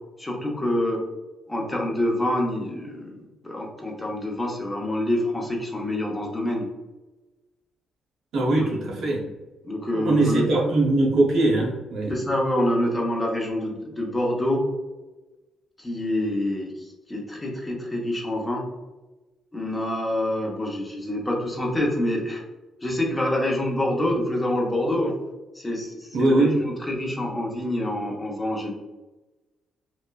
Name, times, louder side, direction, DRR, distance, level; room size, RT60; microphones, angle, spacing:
voice 1, 0.2-1.0 1.5-3.1 3.4-6.7 8.6-8.8 9.6-10.5 12.1-14.6 15.8-18.6 19.5-22.4 22.8-25.1 25.5-28.7, left 1 dB, 15° left, -1 dB, 0.6 m, -26 dB
voice 2, 8.3-9.2 9.9-12.1 26.1-26.6, right 2 dB, 75° right, -2 dB, 0.8 m, -21 dB
3.0 x 2.1 x 2.3 m, 1.1 s
cardioid pair, 90°, 0 cm